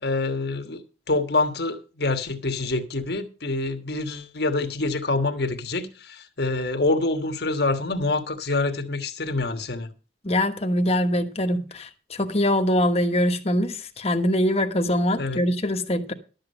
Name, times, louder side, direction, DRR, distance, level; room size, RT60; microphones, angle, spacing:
voice 1, 0.0-0.8 1.1-9.9 15.2-15.4, left 2 dB, 60° left, 1.4 m, -26 dB
voice 2, 10.2-16.1, left 1 dB, 35° left, 1.2 m, -23 dB
12.0 x 7.9 x 5.5 m
head